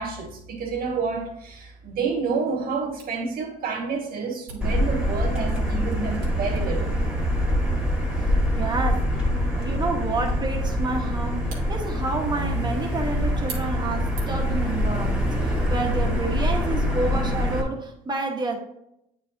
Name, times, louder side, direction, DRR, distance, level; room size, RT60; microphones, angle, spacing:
voice 1, 0.0-6.9, right 5 dB, 60° right, 1.8 m, -29 dB
Camera, 3.0-14.6, right 4 dB, 90° right, 1.9 m, -48 dB
Motor vehicle (road), 4.6-17.6, equal, 5° right, 1.8 m, -25 dB
voice 2, 8.6-18.6, right 3 dB, 25° right, 1.4 m, -29 dB
8.9 x 4.4 x 2.8 m
cardioid pair, 110°, 17 cm